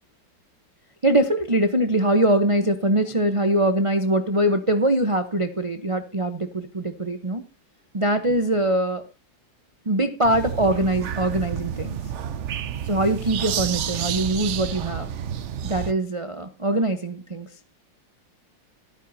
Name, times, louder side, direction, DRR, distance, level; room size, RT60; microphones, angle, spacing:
voice 1, 1.0-7.4 7.9-9.0 9.9-12.0 12.8-15.1 15.6-17.5, right 1 dB, 30° right, 7 dB, 0.6 m, -22 dB
sound 1, 10.2-15.9, right 9 dB, 65° right, 0.7 m, -30 dB
13.5 x 12.0 x 2.8 m, 0.31 s
omnidirectional pair, 2.0 m